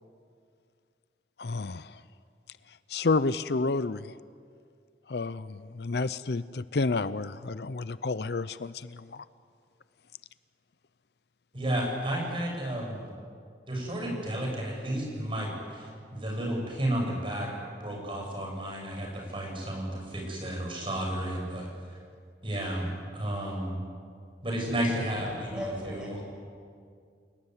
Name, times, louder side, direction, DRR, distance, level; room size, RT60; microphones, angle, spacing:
voice 1, 1.4-2.0 2.9-4.1 5.1-9.2, left 3 dB, 70° left, 15 dB, 0.6 m, -30 dB
voice 2, 11.5-13.1 13.7-17.5 17.8-21.7 22.4-23.7 24.4-26.2, right 1 dB, 30° right, -1 dB, 7.8 m, -32 dB
voice 3, 25.2-26.2, equal, 5° right, -2 dB, 7.1 m, -38 dB
29.0 x 19.0 x 9.8 m, 2.2 s
head